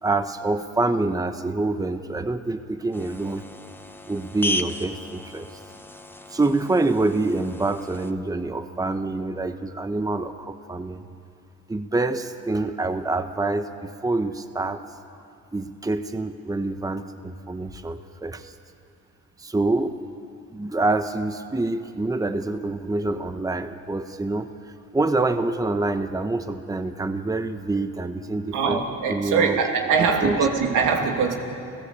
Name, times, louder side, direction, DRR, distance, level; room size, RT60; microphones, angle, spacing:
voice 1, 0.0-3.4 4.1-5.6 6.3-11.0 11.7-14.8 15.5-18.5 19.4-20.0 20.5-28.8 29.1-29.6 30.0-30.4, right 2 dB, 10° right, 9 dB, 1.0 m, -26 dB
sound 1, 2.9-8.1, left 1 dB, 5° left, 1.1 m, -35 dB
voice 2, 28.5-31.4, right 5 dB, 85° right, 3 dB, 2.6 m, -22 dB
29.0 x 15.5 x 8.4 m, 2.5 s
cardioid pair, 90°, 30 cm